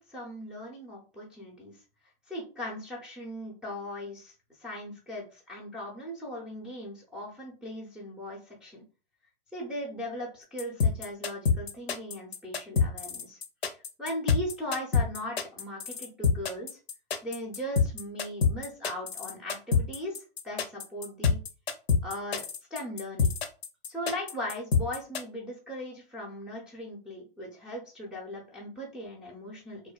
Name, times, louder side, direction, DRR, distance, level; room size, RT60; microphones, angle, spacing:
voice 1, 0.0-1.8 2.3-8.8 9.5-13.4 13.7-16.8 17.2-21.4 22.0-23.3 23.9-29.8, equal, 5° right, -3 dB, 0.4 m, -38 dB
sound 1, 10.6-25.2, left 5 dB, 90° left, 0.5 m, -26 dB
2.5 x 2.2 x 2.2 m, 0.35 s
hypercardioid pair, 120°, 30 cm